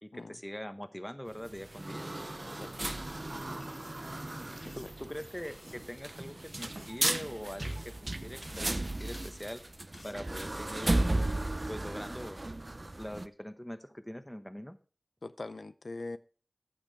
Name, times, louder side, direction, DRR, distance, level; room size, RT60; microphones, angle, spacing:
voice 1, 0.0-2.1 4.8-9.6 10.0-11.1 11.7-12.4 13.0-14.8, equal, 10° left, 1.1 m, -43 dB
sound 1, 1.3-13.3, right 1 dB, 45° right, 0.6 m, -35 dB
sound 2, 3.6-10.2, left 2 dB, 65° left, 1.5 m, -58 dB
voice 2, 4.4-4.9 15.2-16.2, left 2 dB, 80° left, 0.5 m, -43 dB
15.0 x 6.0 x 3.4 m
wide cardioid pair, 45°, 0 cm